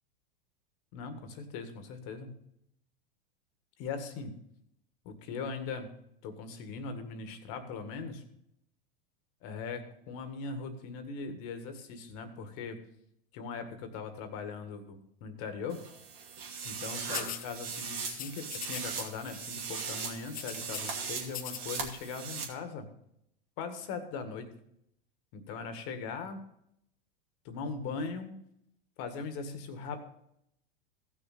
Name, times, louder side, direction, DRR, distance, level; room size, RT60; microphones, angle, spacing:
voice 1, 0.9-2.4 3.8-4.4 5.0-5.9 6.2-8.2 9.4-12.8 13.3-15.8 16.6-22.9 23.6-24.5 25.3-26.4 27.4-28.3 29.0-30.0, left 4 dB, 50° left, 8 dB, 1.8 m, -40 dB
sound 1, 15.7-22.4, right 6 dB, 75° right, 2.6 m, -39 dB
sound 2, 17.1-17.5 18.1-19.0 19.3-19.5 19.8-20.9 21.3-21.9, left 10 dB, 30° left, 0.7 m, -41 dB
15.5 x 6.3 x 4.2 m, 0.75 s
hypercardioid pair, 105°, 29 cm